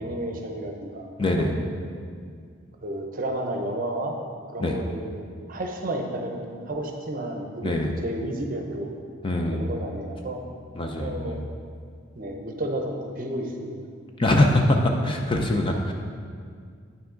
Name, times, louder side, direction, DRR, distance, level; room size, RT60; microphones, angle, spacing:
voice 1, 0.0-1.1 1.3-1.6 2.8-4.2 4.5-8.9 9.5-10.4 11.0-11.4 12.1-13.8 14.3-14.4, right 1 dB, 40° right, 3 dB, 0.7 m, -32 dB
voice 2, 1.2-1.5 4.6-4.8 7.6-7.9 9.2-9.7 10.7-11.5 14.2-15.9, left 1 dB, 25° left, 2 dB, 0.5 m, -23 dB
8.8 x 5.8 x 3.8 m, 2.1 s
head